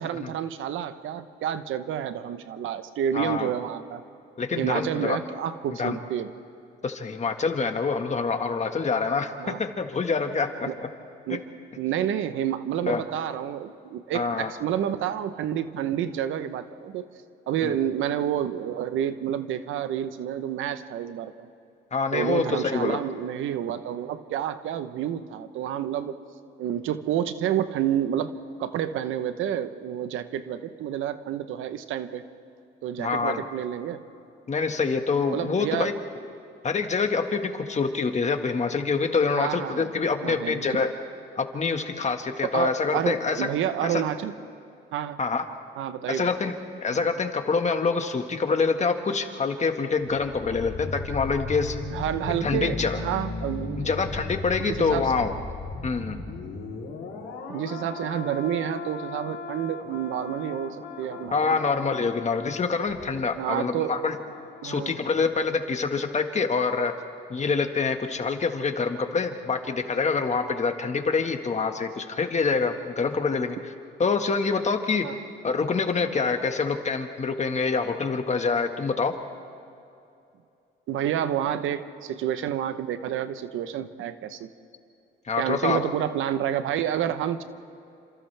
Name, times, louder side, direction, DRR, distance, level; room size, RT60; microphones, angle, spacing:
voice 1, 0.0-4.0 4.5-6.3 9.4-9.6 10.6-10.7 11.3-11.4 11.8-17.1 17.5-21.5 22.1-26.2 26.6-28.3 28.6-32.2 32.8-34.0 35.3-35.9 39.3-39.9 40.2-40.6 42.4-44.3 44.9-45.2 45.8-46.3 46.9-47.1 51.9-53.9 54.7-55.1 57.5-61.6 63.3-64.0 64.6-64.9 75.0-75.2 80.9-84.5 85.4-87.4, right 10 dB, 85° right, 11 dB, 1.0 m, -29 dB
voice 2, 3.1-3.5 4.4-5.2 5.8-6.0 6.8-9.3 9.6-10.5 10.8-10.9 11.3-11.4 12.9-13.0 14.1-14.5 17.6-17.7 21.9-23.0 33.0-33.4 34.5-35.9 36.6-40.9 41.4-43.5 43.8-44.0 45.2-45.4 46.1-46.5 46.8-51.8 52.4-53.0 53.8-55.3 55.8-56.2 61.3-64.1 64.6-66.9 67.3-73.6 74.0-75.1 75.4-79.1 85.3-85.8, left 4 dB, 35° left, 5 dB, 1.7 m, -26 dB
sound 1, 50.0-64.9 65.2-65.4, left 3 dB, 80° left, 3.6 m, -37 dB
28.5 x 26.5 x 3.5 m, 2.6 s
cardioid pair, 90°, 20 cm